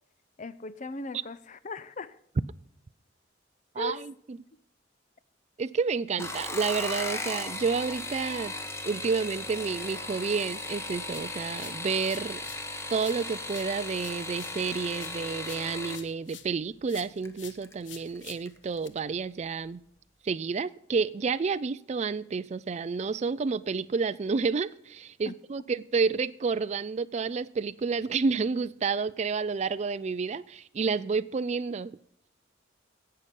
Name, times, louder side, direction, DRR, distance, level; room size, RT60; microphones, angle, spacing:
voice 1, 0.4-2.2 3.8-4.0 25.2-25.3, left 2 dB, 40° left, 0.6 m, -38 dB
voice 2, 5.6-8.5 8.8-12.4 12.9-19.8 20.2-31.9, right 5 dB, 35° right, 0.3 m, -30 dB
sound 1, 6.1-16.0 17.2-17.7 18.2-18.6 18.9-19.0, left 2 dB, 15° left, 1.2 m, -36 dB
sound 2, 11.1-12.7 13.0-16.6 16.9-18.9, left 10 dB, 70° left, 1.0 m, -49 dB
17.0 x 6.7 x 5.3 m
head